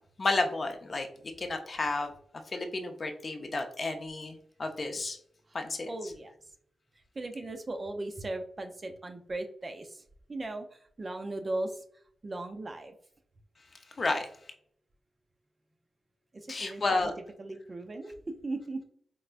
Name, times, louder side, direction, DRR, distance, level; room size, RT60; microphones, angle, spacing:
voice 1, 0.2-1.1 1.4-2.1 2.5-5.2 5.5-5.9 14.0-14.3 16.5-17.1, left 3 dB, 45° left, 5 dB, 0.6 m, -31 dB
voice 2, 5.8-6.3 7.1-10.0 10.3-11.8 12.2-12.9 16.3-17.1 17.4-18.1 18.4-18.8, right 2 dB, 40° right, 6 dB, 0.5 m, -37 dB
4.5 x 2.1 x 2.4 m, 0.62 s
cardioid pair, 60°, 0 cm